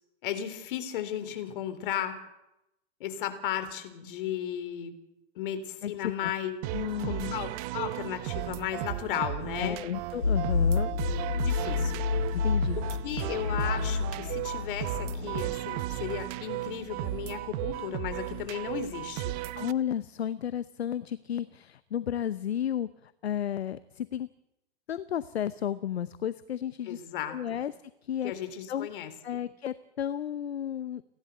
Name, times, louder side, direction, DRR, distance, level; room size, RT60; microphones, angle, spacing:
voice 1, 0.2-2.2 3.0-4.9 5.4-6.6 7.0-9.8 11.4-12.0 12.8-19.4 26.8-27.6 28.2-29.1, left 10 dB, 55° left, 9 dB, 3.5 m, -35 dB
voice 2, 5.8-6.3 6.7-7.3 9.6-10.9 12.3-12.8 19.5-24.3 24.9-27.0 27.3-27.7 28.0-28.3 28.7-28.9 29.2-31.0, left 10 dB, 70° left, 15 dB, 0.9 m, -33 dB
sound 1, 6.6-19.7, right 16 dB, 35° right, 0.9 m, -35 dB
sound 2, 10.2-15.4, left 5 dB, 90° left, 2.2 m, -29 dB
29.5 x 12.0 x 8.1 m, 0.88 s
figure-of-eight pair, 110°, 33 cm